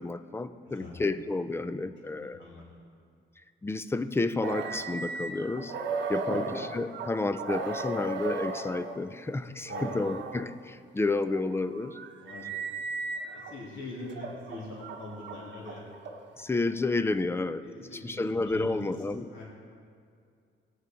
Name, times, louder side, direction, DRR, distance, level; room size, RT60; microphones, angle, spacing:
voice 1, 0.0-2.4 3.6-5.7 6.1-12.0 16.4-17.6 17.9-19.3, left 3 dB, 10° left, 12 dB, 0.5 m, -31 dB
voice 2, 0.6-0.9 2.2-2.6 6.3-6.4 9.7-10.0 12.2-12.8 13.2-15.8 17.6-18.8 19.3-19.4, left 2 dB, 70° left, -4 dB, 3.0 m, -42 dB
sound 1, 4.4-9.0 9.7-10.4 11.2-13.6 14.1-16.5, right 3 dB, 65° right, 1.0 m, -36 dB
17.5 x 6.5 x 4.5 m, 2.3 s
cardioid pair, 90°, 20 cm